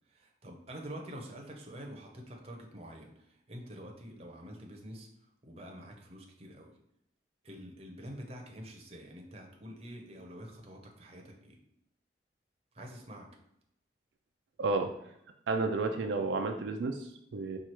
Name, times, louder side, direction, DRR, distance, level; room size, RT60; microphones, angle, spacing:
voice 1, 0.1-3.1 3.5-5.1 5.4-6.7 7.4-11.6 12.7-13.3, equal, 35° right, 1 dB, 0.7 m, -46 dB
voice 2, 14.6-14.9 15.5-17.6, right 3 dB, 75° right, 5 dB, 0.4 m, -31 dB
4.5 x 2.4 x 4.4 m, 0.78 s
head